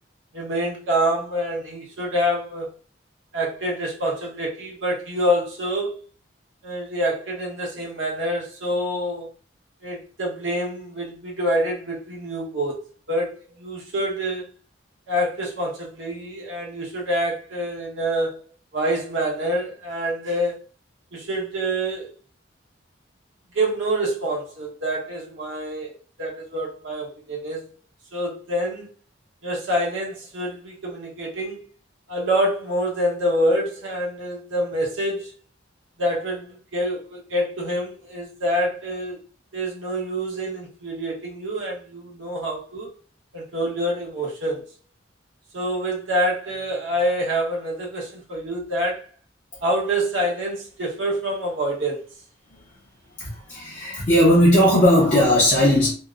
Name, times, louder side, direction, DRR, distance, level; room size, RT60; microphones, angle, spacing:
voice 1, 0.3-2.7 3.3-6.0 6.6-9.3 9.8-12.8 13.1-14.4 15.1-18.4 18.7-20.5 21.1-22.1 23.5-25.9 26.2-27.6 28.1-28.9 29.4-31.6 32.1-35.3 36.0-39.2 39.5-42.9 43.3-44.7 45.5-49.0 49.6-52.0, equal, 75° right, 0.9 m, -26 dB
voice 2, 53.2-55.9, equal, 40° left, 0.5 m, -17 dB
2.7 x 2.0 x 2.3 m
head